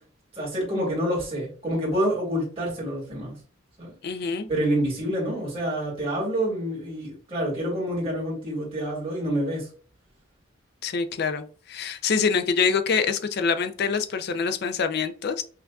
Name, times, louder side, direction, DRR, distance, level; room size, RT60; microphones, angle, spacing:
voice 1, 0.3-3.3 3.8-3.9 4.5-9.7, equal, 30° right, -4 dB, 1.9 m, -27 dB
voice 2, 4.0-4.5 10.8-15.4, left 5 dB, 50° left, 9 dB, 0.4 m, -25 dB
5.7 x 2.5 x 2.3 m, 0.40 s
head